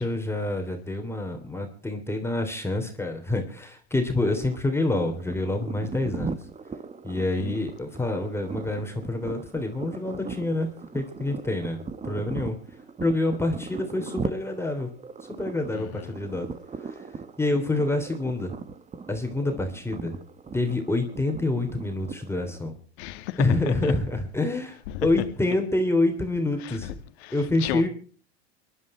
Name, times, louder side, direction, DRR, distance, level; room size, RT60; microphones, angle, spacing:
voice 1, 0.0-6.4 7.0-12.6 13.0-14.9 15.4-16.5 16.8-17.0 17.4-18.5 19.1-20.1 20.5-22.7 23.4-27.0 27.3-27.9, left 2 dB, 5° left, 3.2 m, -27 dB
sound 1, 4.1-22.7, right 5 dB, 20° right, 1.4 m, -39 dB
voice 2, 15.7-16.1 23.0-23.4 23.7-23.9 24.9-25.1 26.6-26.7 27.2-27.3 27.6-27.9, left 15 dB, 70° left, 2.0 m, -34 dB
25.0 x 11.5 x 4.4 m
hypercardioid pair, 100°, 33 cm